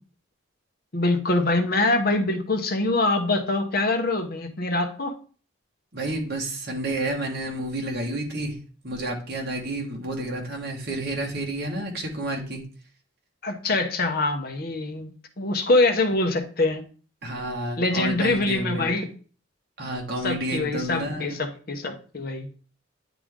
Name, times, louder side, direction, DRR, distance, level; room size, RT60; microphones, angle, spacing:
voice 1, 0.9-5.2 13.4-16.8 17.8-19.1 20.2-22.5, left 2 dB, 45° left, 6 dB, 0.9 m, -24 dB
voice 2, 5.9-8.6 8.8-12.6 17.2-18.9 19.8-21.4, right 1 dB, 50° right, 0 dB, 1.5 m, -30 dB
9.9 x 3.4 x 3.6 m, 0.39 s
head